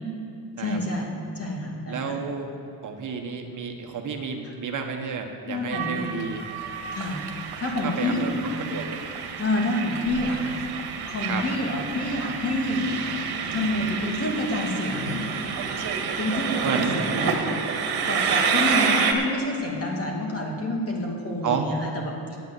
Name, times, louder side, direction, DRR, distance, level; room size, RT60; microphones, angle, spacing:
voice 1, 0.6-2.2 5.5-6.0 6.9-7.3 7.6-8.6 9.4-10.6 11.1-12.9 13.5-15.2 16.2-17.4 18.1-22.4, left 1 dB, 35° left, -1 dB, 2.5 m, -28 dB
voice 2, 1.9-2.5 2.8-6.4 7.8-8.3 8.7-8.9 11.3-11.4 16.6-17.0 21.4-21.7, right 6 dB, 50° right, 3 dB, 1.3 m, -30 dB
Train, 5.7-19.1, right 6 dB, 65° right, 1.6 m, -29 dB
9.2 x 8.6 x 8.1 m, 2.8 s
cardioid pair, 110°, 40 cm